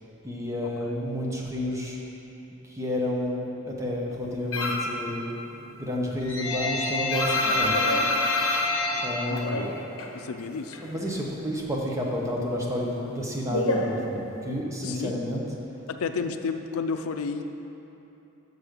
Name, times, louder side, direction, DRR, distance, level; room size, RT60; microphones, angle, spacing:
voice 1, 0.2-2.0 2.6-5.2 5.8-7.8 9.0-9.6 10.8-15.4, left 1 dB, 15° right, -2 dB, 0.8 m, -30 dB
sound 1, 4.5-5.0 5.3-10.2 10.4-11.5 11.8-14.6, left 2 dB, 70° left, 0.9 m, -27 dB
voice 2, 9.3-9.7 10.1-10.8 14.8-15.3 15.9-17.4, left 5 dB, 90° left, 7 dB, 0.4 m, -31 dB
6.6 x 6.2 x 5.1 m, 3.0 s
head